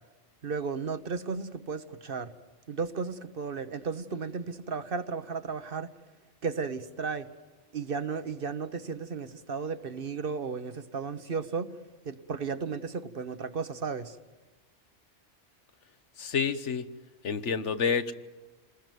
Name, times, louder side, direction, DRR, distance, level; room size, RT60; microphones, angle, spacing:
voice 1, 0.4-2.3 2.7-5.9 6.4-7.3 7.7-11.7 12.0-14.2, right 5 dB, 50° right, 11 dB, 1.4 m, -34 dB
voice 2, 16.2-16.9 17.2-18.1, left 6 dB, 75° left, 11 dB, 1.5 m, -28 dB
28.5 x 20.5 x 9.3 m, 1.3 s
omnidirectional pair, 1.2 m